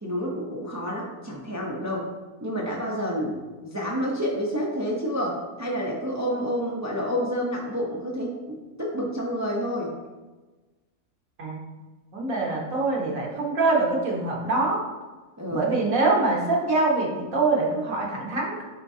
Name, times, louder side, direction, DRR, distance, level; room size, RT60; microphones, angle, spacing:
voice 1, 0.0-2.1 2.4-3.4 3.7-9.9 15.4-15.6, equal, 15° right, -2 dB, 0.6 m, -29 dB
voice 2, 12.1-14.8 15.5-18.6, right 3 dB, 70° right, -2 dB, 1.6 m, -24 dB
9.6 x 3.6 x 2.7 m, 1.2 s
omnidirectional pair, 1.5 m